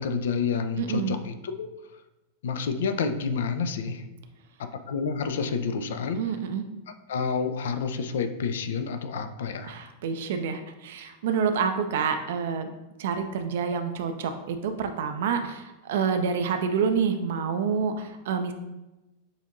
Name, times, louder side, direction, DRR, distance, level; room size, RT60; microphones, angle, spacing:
voice 1, 0.0-1.7 2.4-4.0 4.6-6.2 7.1-9.7, left 5 dB, 60° left, 8 dB, 0.3 m, -29 dB
voice 2, 0.8-1.1 6.2-6.7 9.7-12.7 13.0-18.5, right 6 dB, 55° right, 7 dB, 0.4 m, -28 dB
6.5 x 2.6 x 2.6 m, 1.0 s
figure-of-eight pair, 90°, 0 cm